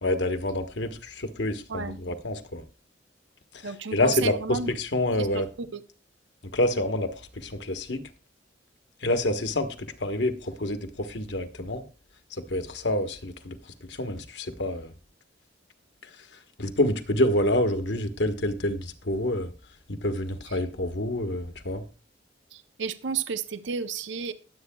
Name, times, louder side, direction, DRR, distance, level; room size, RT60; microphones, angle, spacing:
voice 1, 0.0-2.6 3.5-3.7 3.9-5.5 6.4-8.0 9.0-11.8 12.3-13.6 13.8-14.9 16.6-19.5 19.9-21.8, left 1 dB, 65° left, 1.2 m, -27 dB
voice 2, 3.6-4.7 5.2-5.8 20.5-20.6 22.5-24.3, right 5 dB, 70° right, 0.7 m, -32 dB
20.5 x 8.2 x 2.3 m
head